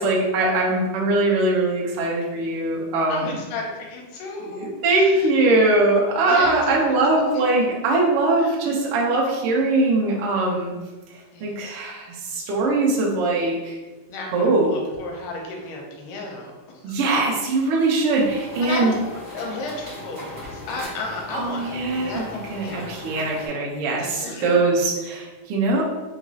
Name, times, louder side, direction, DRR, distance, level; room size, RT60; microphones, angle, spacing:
voice 1, 0.0-3.4 4.4-10.7 11.1-13.8 14.3-14.7 16.8-18.9 21.3-25.8, right 2 dB, 85° right, -3 dB, 1.3 m, -21 dB
voice 2, 3.1-4.7 5.0-5.3 6.3-6.7 7.3-7.4 8.4-8.6 11.3-11.8 14.1-17.0 18.6-19.0 19.3-23.0 24.0-24.7, left 3 dB, 80° left, 1 dB, 2.3 m, -34 dB
sound 1, 18.1-23.5, left 1 dB, 45° right, 1.5 m, -38 dB
5.0 x 3.0 x 2.8 m, 1.2 s
omnidirectional pair, 3.8 m